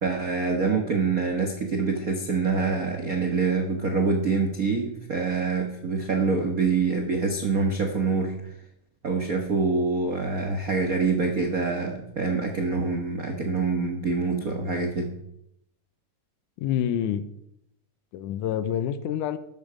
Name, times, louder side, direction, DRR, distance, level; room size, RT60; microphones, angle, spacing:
voice 1, 0.0-8.4 9.0-15.1, right 4 dB, 90° right, 3 dB, 0.7 m, -25 dB
voice 2, 16.6-17.3 18.1-19.4, left 10 dB, 80° left, 12 dB, 2.2 m, -27 dB
13.5 x 10.5 x 5.1 m, 0.77 s
omnidirectional pair, 3.8 m